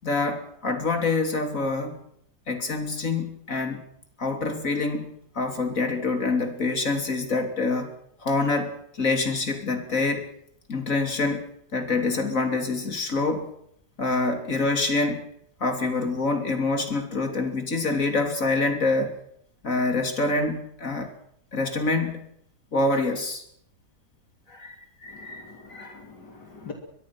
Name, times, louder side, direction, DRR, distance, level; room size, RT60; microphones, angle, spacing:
voice 1, 0.0-2.0 2.5-3.8 4.2-7.9 8.2-10.2 10.7-13.5 14.0-15.2 15.6-19.2 19.6-21.1 21.5-22.2 22.7-23.4 24.5-24.7 25.0-26.0, left 3 dB, 50° left, 6 dB, 3.5 m, -26 dB
voice 2, 25.1-26.7, left 4 dB, 80° left, 3 dB, 3.5 m, -44 dB
23.0 x 22.0 x 6.1 m, 0.69 s
omnidirectional pair, 1.8 m